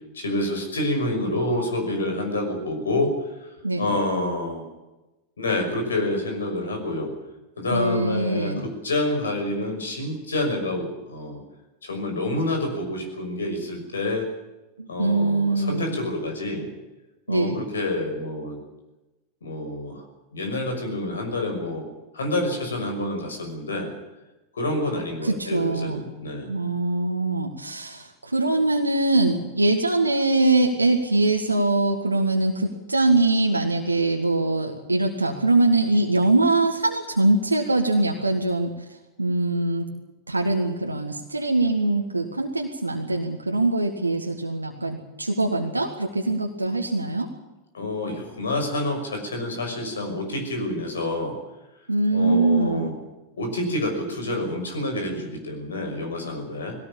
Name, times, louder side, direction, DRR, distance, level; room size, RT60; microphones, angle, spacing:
voice 1, 0.1-4.7 5.4-7.1 7.6-11.4 11.8-14.3 14.9-16.7 17.3-18.6 19.4-20.1 20.3-21.9 22.1-23.9 24.5-26.5 47.7-51.4 52.1-52.9 53.4-56.8, left 1 dB, 70° left, 5 dB, 6.0 m, -28 dB
voice 2, 7.7-8.7 14.8-16.0 17.3-17.6 25.2-26.0 26.5-38.7 39.2-39.9 40.3-47.3 51.9-52.9, right 2 dB, 80° right, 2 dB, 1.8 m, -22 dB
20.5 x 17.5 x 8.7 m, 1.1 s
figure-of-eight pair, 90°, 0 cm